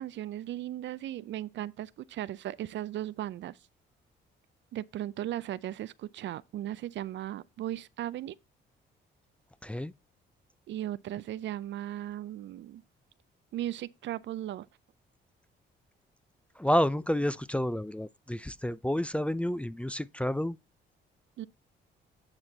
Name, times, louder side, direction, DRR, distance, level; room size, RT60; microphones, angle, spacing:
voice 1, 0.0-3.6 4.7-8.4 10.7-12.8 13.5-14.7 21.4-21.5, right 13 dB, 65° right, 0.5 m, -37 dB
voice 2, 9.6-9.9 16.6-20.6, equal, 5° left, 0.4 m, -29 dB
8.7 x 4.4 x 3.9 m
cardioid pair, 90°, 20 cm